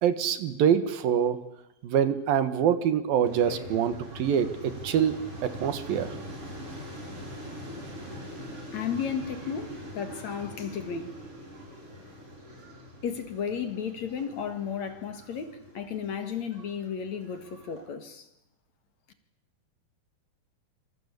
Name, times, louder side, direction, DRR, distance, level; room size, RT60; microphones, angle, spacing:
voice 1, 0.0-1.4 1.8-6.2, right 8 dB, 75° right, 12 dB, 3.4 m, -25 dB
sound 1, 3.2-17.9, equal, 35° right, 9.1 m, -43 dB
voice 2, 8.7-11.2 13.0-18.3, left 7 dB, 55° left, 9 dB, 2.9 m, -34 dB
27.5 x 25.5 x 8.5 m, 0.88 s
omnidirectional pair, 4.2 m